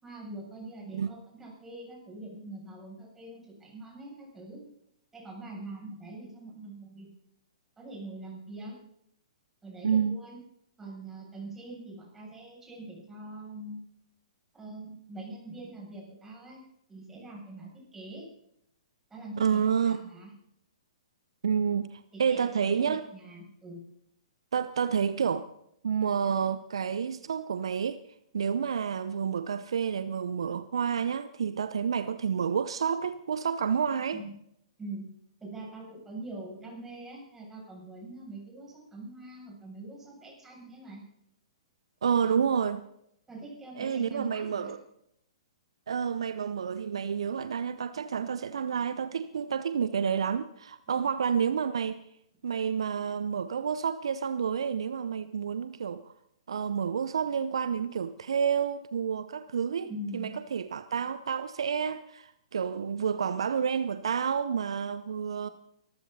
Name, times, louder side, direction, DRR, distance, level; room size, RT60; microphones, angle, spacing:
voice 1, 0.0-4.6 5.1-7.1 7.8-8.8 9.6-10.4 10.8-13.8 14.5-16.6 16.9-18.3 19.1-20.3 22.1-23.8 34.1-34.3 34.8-35.1 35.4-41.0 43.3-44.7 59.8-60.3, right 2 dB, 10° right, 7.5 m, -43 dB
voice 2, 9.8-10.2 19.4-20.0 21.4-23.1 24.5-25.5 25.8-28.0 28.3-34.2 42.0-42.8 43.8-44.8 45.9-52.0 52.4-56.1 56.5-65.5, right 7 dB, 65° right, 0.7 m, -29 dB
24.0 x 14.5 x 4.1 m
figure-of-eight pair, 115°, 3 cm